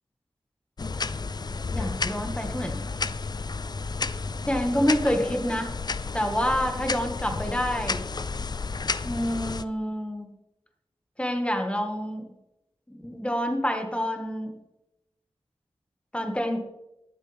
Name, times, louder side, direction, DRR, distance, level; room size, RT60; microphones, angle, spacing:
sound 1, 0.8-9.6, left 4 dB, 40° left, 0.4 m, -32 dB
voice 1, 1.7-2.8 4.5-5.7 6.1-8.0 9.0-10.3 11.2-12.3 12.9-14.5 16.1-16.6, equal, 10° left, 4 dB, 1.8 m, -27 dB
20.5 x 7.7 x 3.5 m, 0.92 s
wide cardioid pair, 75°, 11 cm